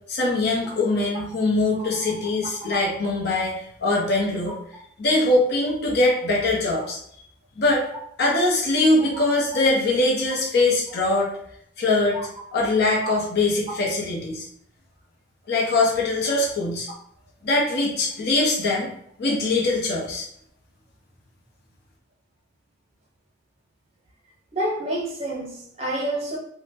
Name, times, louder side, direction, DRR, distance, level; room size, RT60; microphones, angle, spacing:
voice 1, 0.1-4.5 5.0-7.0 7.6-7.9 8.2-11.3 11.8-12.2 12.5-14.4 15.5-16.9 17.4-18.9 19.2-20.3, left 2 dB, 55° left, -3 dB, 0.7 m, -22 dB
voice 2, 1.8-2.1 2.6-2.8 12.1-12.2 13.0-13.1 24.5-26.4, right 1 dB, 30° right, -1 dB, 0.6 m, -29 dB
3.7 x 2.1 x 2.6 m, 0.70 s
head